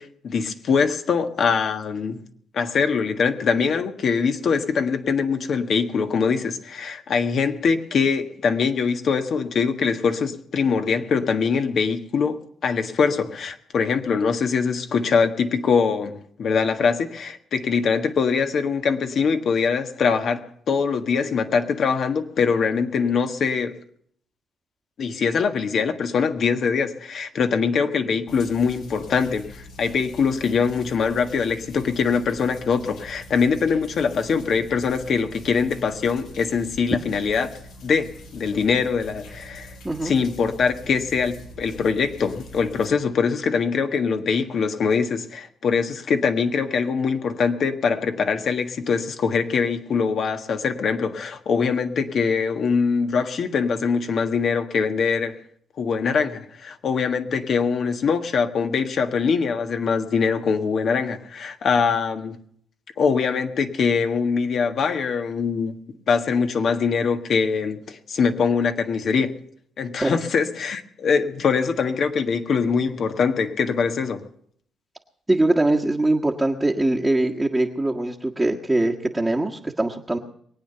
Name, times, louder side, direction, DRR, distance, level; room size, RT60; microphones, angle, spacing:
voice 1, 0.0-2.2 2.5-20.4 20.7-23.8 25.0-38.1 38.3-39.8 40.0-55.4 55.8-62.4 63.0-65.8 66.1-69.4 69.8-74.2, left 5 dB, 60° left, 1.5 m, -23 dB
sound 1, 28.3-42.9, equal, 90° left, 5.3 m, -44 dB
voice 2, 75.3-80.2, right 2 dB, 10° right, 1.4 m, -22 dB
22.5 x 8.9 x 6.8 m
cardioid pair, 90°, 0 cm